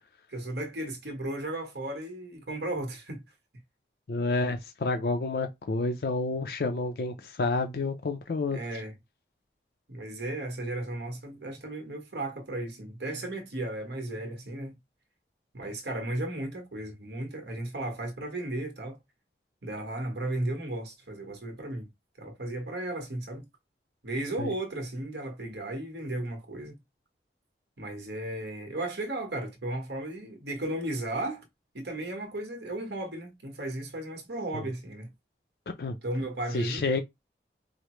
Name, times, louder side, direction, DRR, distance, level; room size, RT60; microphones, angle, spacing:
voice 1, 0.3-3.2 8.5-8.9 9.9-14.7 15.5-19.0 19.6-21.9 22.2-23.4 24.0-26.8 27.8-31.4 31.7-35.1 36.0-36.8, right 1 dB, 75° right, 1.3 m, -35 dB
voice 2, 4.1-8.6 24.4-24.5 34.5-34.6 35.8-35.9 36.5-37.0, left 3 dB, 65° left, 0.5 m, -29 dB
4.9 x 2.0 x 3.0 m
head